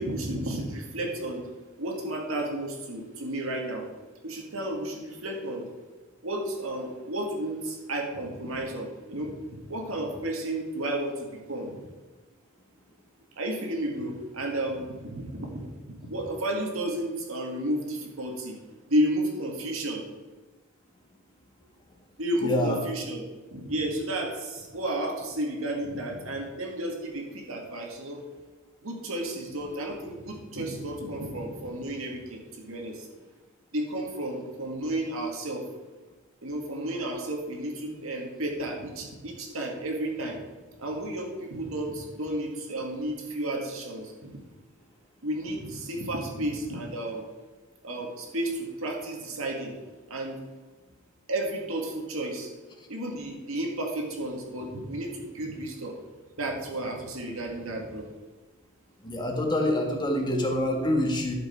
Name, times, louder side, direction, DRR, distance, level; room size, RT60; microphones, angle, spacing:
voice 1, 0.0-1.4 1.8-3.9 4.2-5.7 6.2-11.8 13.4-18.6 18.9-20.0 22.2-23.3 23.5-28.2 28.8-33.1 33.7-35.7 36.4-40.4 40.8-44.3 45.2-47.3 47.8-49.7 50.1-50.4 51.3-52.5 52.9-56.0 56.4-58.1, right 1 dB, 70° right, 1 dB, 2.1 m, -32 dB
voice 2, 22.4-22.8 59.0-61.4, left 1 dB, 20° left, 1 dB, 1.6 m, -26 dB
12.0 x 6.8 x 4.5 m, 1.3 s
head